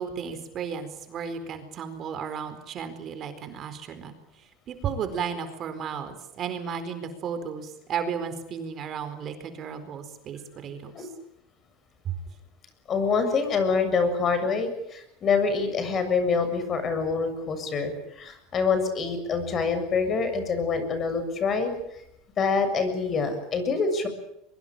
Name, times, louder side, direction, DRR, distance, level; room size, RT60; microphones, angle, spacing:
voice 1, 0.0-4.1 4.4-11.1 12.0-12.2, right 7 dB, 40° right, 10 dB, 4.3 m, -34 dB
voice 2, 12.9-22.0 22.4-24.1, left 5 dB, 35° left, 9 dB, 7.2 m, -26 dB
23.5 x 23.0 x 9.0 m, 0.81 s
supercardioid pair, 125°, 0 cm